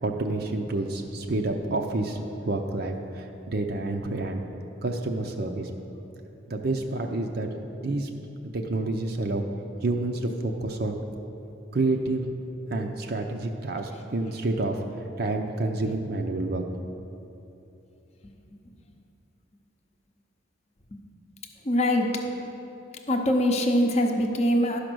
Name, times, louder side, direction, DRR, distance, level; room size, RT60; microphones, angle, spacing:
voice 1, 0.0-4.4 4.8-5.7 6.5-7.5 7.8-8.1 8.5-9.4 9.8-11.0 11.7-12.3 12.7-14.8 15.2-16.6, right 2 dB, 50° right, 3 dB, 0.5 m, -28 dB
voice 2, 21.6-22.1 23.1-24.8, equal, 30° left, 3 dB, 0.7 m, -23 dB
12.0 x 5.1 x 6.1 m, 2.9 s
head